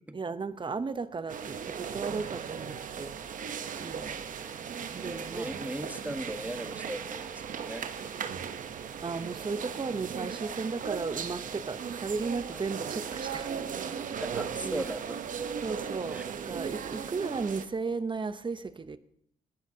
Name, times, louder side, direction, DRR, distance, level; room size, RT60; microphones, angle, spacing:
voice 1, 0.1-3.1 3.8-4.2 4.9-5.6 9.0-14.2 14.6-14.9 15.6-19.0, right 4 dB, 35° right, 0.8 m, -35 dB
sound 1, 1.3-17.6, right 7 dB, 70° right, 0.9 m, -37 dB
voice 2, 5.0-7.9 12.5-12.6 14.2-15.2 16.1-16.2, right 1 dB, 10° right, 1.5 m, -38 dB
19.5 x 10.5 x 2.8 m
supercardioid pair, 50°, 14 cm